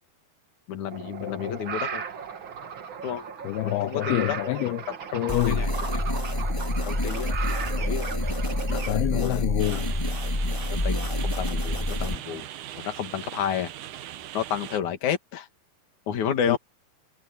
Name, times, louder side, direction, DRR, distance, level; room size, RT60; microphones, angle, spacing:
voice 1, 0.7-2.0 3.0-3.2 3.6-4.4 4.9-6.0 6.8-7.3 7.6-8.1 8.7-9.5 10.7-12.5 12.7-13.7 14.3-15.5 16.1-16.6, left 9 dB, 55° left, 3.2 m, -31 dB
sound 1, 0.9-8.9, right 6 dB, 50° right, 1.6 m, -36 dB
voice 2, 1.2-1.6 3.4-4.8 5.1-5.6 8.9-9.9 16.5-16.6, left 17 dB, 80° left, 2.7 m, -27 dB
sound 2, 5.3-12.1, left 1 dB, 10° left, 1.6 m, -27 dB
sound 3, 9.6-14.8, right 12 dB, 70° right, 2.1 m, -40 dB
omnidirectional pair, 4.6 m